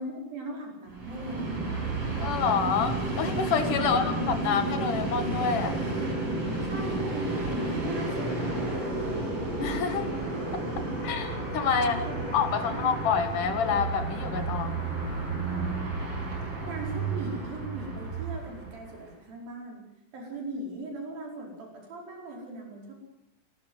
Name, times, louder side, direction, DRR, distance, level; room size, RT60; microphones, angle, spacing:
voice 1, 0.0-1.5 3.8-4.2 6.6-9.4 11.8-12.9 16.7-19.8 20.1-22.9, right 2 dB, 75° right, -1 dB, 6.5 m, -39 dB
Train, 0.9-19.0, right 3 dB, 35° right, 6.2 m, -31 dB
voice 2, 2.2-5.7 9.6-10.1 11.0-12.0 12.3-14.8, left 6 dB, 65° left, 7 dB, 3.2 m, -27 dB
27.0 x 13.0 x 7.8 m, 0.89 s
omnidirectional pair, 4.1 m